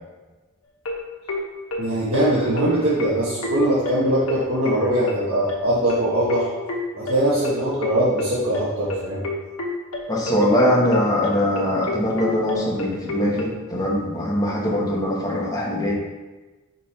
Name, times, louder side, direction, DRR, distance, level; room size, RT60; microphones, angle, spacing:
sound 1, 0.9-13.6, left 2 dB, 90° left, 1.1 m, -29 dB
voice 1, 1.8-6.5 6.9-9.2, right 1 dB, 70° right, -9 dB, 1.3 m, -21 dB
voice 2, 10.1-15.9, left 1 dB, 15° left, -3 dB, 1.2 m, -22 dB
5.2 x 5.1 x 4.3 m, 1.2 s
head